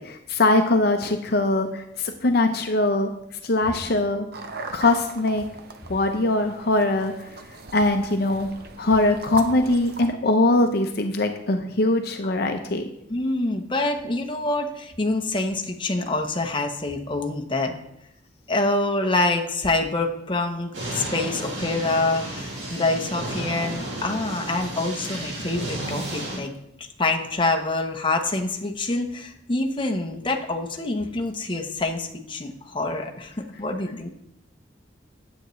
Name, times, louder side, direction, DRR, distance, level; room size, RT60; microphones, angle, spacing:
voice 1, 0.0-3.1 3.4-4.3 4.7-5.5 5.9-7.1 7.7-8.5 8.8-12.9, left 2 dB, 60° left, 6 dB, 0.7 m, -22 dB
sound 1, 4.3-10.1, right 3 dB, 55° right, 0.8 m, -38 dB
voice 2, 13.1-17.7 18.5-26.5 26.8-34.1, left 2 dB, 25° left, 3 dB, 0.9 m, -26 dB
sound 2, 20.7-26.4, right 1 dB, 85° right, 2.4 m, -32 dB
9.4 x 8.0 x 3.2 m, 0.78 s
head